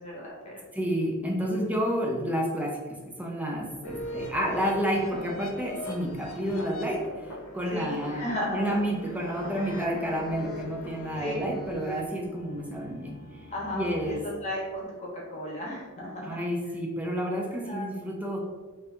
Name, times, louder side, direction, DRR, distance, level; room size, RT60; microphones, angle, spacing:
voice 1, 0.0-0.6 1.5-1.6 7.7-8.8 11.1-11.5 13.5-16.4 17.5-17.9, left 1 dB, 30° left, -4 dB, 0.9 m, -35 dB
voice 2, 0.7-2.8 3.2-7.3 7.5-13.1 13.7-14.2 16.2-18.5, equal, 5° right, -1 dB, 0.5 m, -30 dB
sound 1, 3.8-14.8, equal, 80° left, 0.6 m, -41 dB
2.8 x 2.6 x 3.3 m, 1.3 s
head